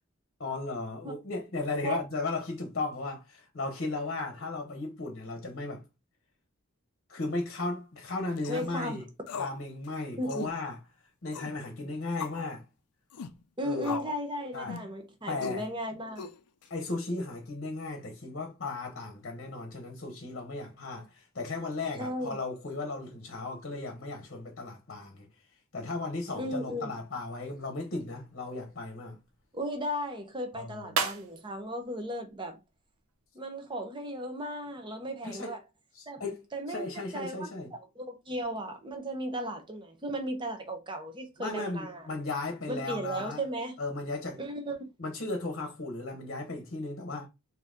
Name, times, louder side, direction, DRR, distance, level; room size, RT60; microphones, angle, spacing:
voice 1, 0.4-5.8 7.1-9.0 9.3-10.8 11.2-12.6 13.6-13.9 14.5-14.7 15.3-15.7 16.7-25.3 25.7-29.2 30.5-30.9 35.2-35.5 35.9-37.7 41.4-43.4 43.8-44.4 45.0-47.3, left 3 dB, 50° left, 0.9 m, -35 dB
sound 1, 8.4-8.7 9.3-9.6 9.8-9.9 10.3-10.5 11.3-11.6 12.2-12.4 13.1-13.3 13.8-14.2 14.7-14.9 15.4-15.6 16.2-16.6, left 6 dB, 85° left, 0.5 m, -39 dB
voice 2, 8.5-9.0 10.2-10.5 13.6-16.3 22.0-22.4 26.3-26.9 29.5-32.6 33.3-35.6 36.1-36.2 36.5-42.1 42.7-43.8 44.4-44.9, equal, 20° right, 0.8 m, -36 dB
sound 2, 27.3-33.3, right 5 dB, 70° right, 0.7 m, -40 dB
3.9 x 2.8 x 3.5 m
head